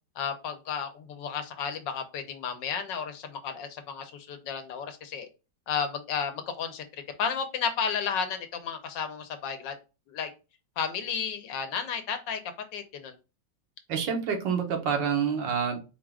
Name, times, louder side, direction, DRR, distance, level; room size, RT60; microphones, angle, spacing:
voice 1, 0.2-5.3 5.7-6.9 7.2-9.7 10.1-10.3 10.8-12.4 12.7-13.1, left 6 dB, 85° left, 8 dB, 1.5 m, -32 dB
voice 2, 13.9-15.8, right 7 dB, 85° right, 4 dB, 1.7 m, -27 dB
4.6 x 2.4 x 4.8 m, 0.30 s
omnidirectional pair, 1.9 m